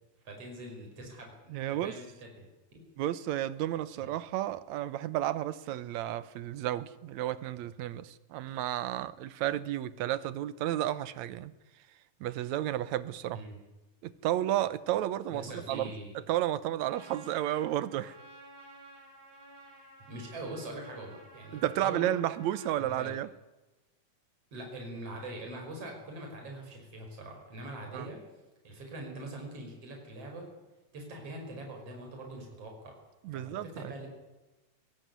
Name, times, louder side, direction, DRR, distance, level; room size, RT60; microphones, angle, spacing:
voice 1, 0.2-2.5 2.7-2.9 4.0-4.1 13.3-13.6 15.3-16.1 19.7-22.1 22.8-23.1 24.5-28.2 28.6-30.5 30.9-32.9 33.3-34.1, right 1 dB, 45° right, 6.4 m, -43 dB
voice 2, 1.5-1.9 3.0-11.5 12.2-13.4 14.0-15.9 16.3-18.1 21.5-23.3 27.9-28.1 33.2-33.9, right 13 dB, 70° right, 2.0 m, -32 dB
Trumpet, 16.8-23.1, right 1 dB, 25° right, 7.5 m, -53 dB
22.0 x 17.5 x 9.5 m
omnidirectional pair, 3.8 m